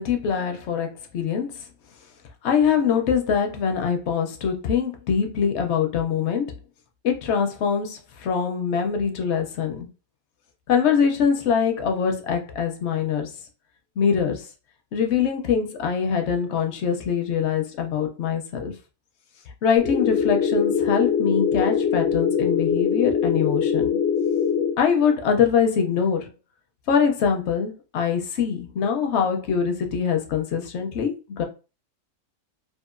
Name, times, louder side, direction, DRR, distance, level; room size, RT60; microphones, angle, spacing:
voice 1, 0.0-1.5 2.4-6.5 7.0-9.9 10.7-13.3 14.0-14.5 14.9-18.7 19.6-23.9 24.8-26.3 26.9-31.4, left 7 dB, 65° left, 0.7 m, -23 dB
sound 1, 19.8-24.8, left 7 dB, 90° left, 1.1 m, -22 dB
2.8 x 2.4 x 2.4 m
omnidirectional pair, 1.5 m